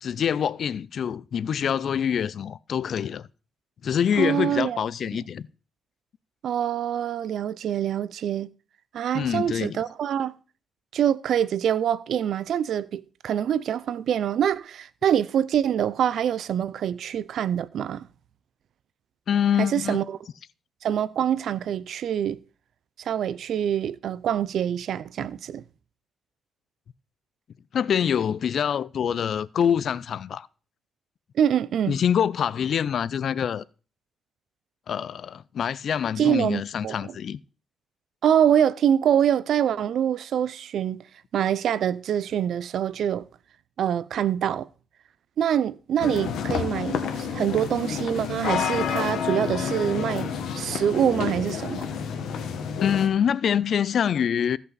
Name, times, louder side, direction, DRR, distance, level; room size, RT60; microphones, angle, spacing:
voice 1, 0.0-3.3 3.8-5.5 9.1-9.8 19.3-20.1 27.7-30.5 31.9-33.6 34.9-37.4 52.8-54.6, left 8 dB, 65° left, 0.4 m, -25 dB
voice 2, 4.2-4.8 6.4-8.5 8.9-10.3 10.9-18.1 19.6-20.2 20.8-22.4 23.0-25.6 31.4-32.0 36.2-37.1 38.2-41.1 41.3-43.3 43.8-44.7 45.4-51.9, right 9 dB, 75° right, 0.5 m, -25 dB
sound 1, 46.0-53.1, left 7 dB, 90° left, 1.4 m, -29 dB
16.0 x 5.5 x 4.1 m
cardioid pair, 80°, 0 cm